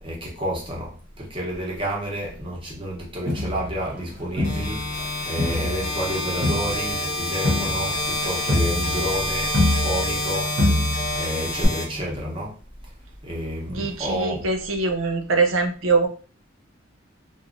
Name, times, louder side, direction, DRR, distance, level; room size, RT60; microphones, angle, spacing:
voice 1, 0.0-10.5 11.1-12.6 13.2-14.5, equal, 25° right, -3 dB, 0.8 m, -30 dB
Crowd, 3.3-5.1 5.4-10.3 10.6-11.2 11.6-11.7, left 1 dB, 55° right, 0.9 m, -25 dB
sound 1, 4.4-12.4, left 1 dB, 45° left, 0.8 m, -28 dB
voice 2, 13.7-16.1, right 4 dB, 90° right, 5 dB, 0.5 m, -23 dB
3.0 x 2.3 x 2.5 m, 0.38 s
head